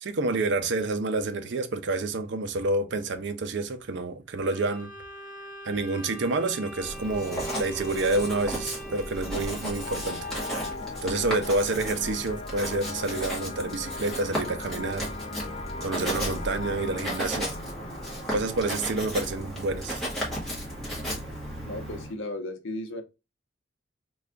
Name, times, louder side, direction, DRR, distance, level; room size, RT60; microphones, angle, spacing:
voice 1, 0.0-4.9 5.6-10.3 11.0-15.1 15.8-17.5 18.3-20.0, right 2 dB, 60° right, 0.5 m, -28 dB
Bowed string instrument, 4.4-11.0, right 2 dB, 15° right, 1.2 m, -41 dB
Writing, 6.8-22.1, equal, 5° left, 1.2 m, -35 dB
sound 1, 9.8-20.9, left 3 dB, 30° left, 0.4 m, -40 dB
voice 2, 21.6-23.0, left 1 dB, 75° left, 0.7 m, -35 dB
3.3 x 2.3 x 3.6 m
head